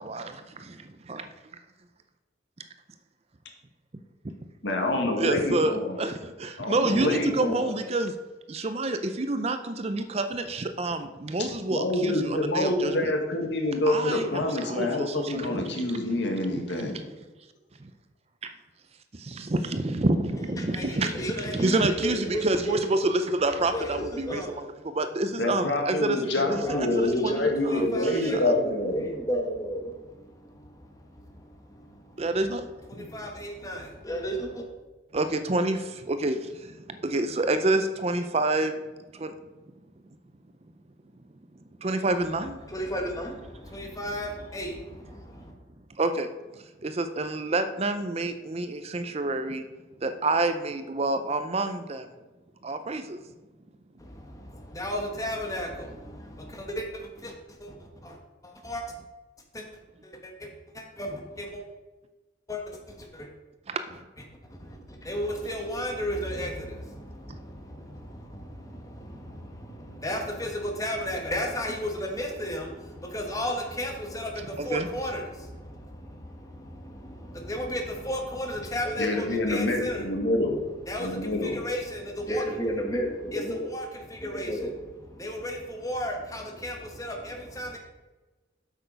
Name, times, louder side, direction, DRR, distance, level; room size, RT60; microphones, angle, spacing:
voice 1, 0.0-0.3 1.1-1.3 5.2-8.1 8.5-13.1 13.9-16.0 16.8-17.0 17.8-17.9 18.4-18.5 19.1-27.9 28.3-28.5 32.2-32.7 32.9-33.1 35.1-38.8 39.1-39.3 41.8-42.6 46.0-49.6 50.0-52.1 52.6-53.2 63.7-64.0 67.3-67.4 74.6-74.9, right 2 dB, 35° right, 9 dB, 0.5 m, -28 dB
voice 2, 4.6-6.0 6.6-7.7 11.7-17.0 25.4-29.0 79.0-80.6 81.0-81.6, left 2 dB, 70° left, 2 dB, 1.7 m, -27 dB
voice 3, 20.5-22.6 23.7-24.6 26.6-32.2 32.9-34.7 42.6-45.5 54.0-58.2 58.4-58.8 59.5-59.7 60.0-61.6 62.5-63.3 64.5-80.3 80.8-87.8, equal, 20° left, 1 dB, 1.4 m, -34 dB
8.2 x 6.9 x 5.1 m, 1.2 s
head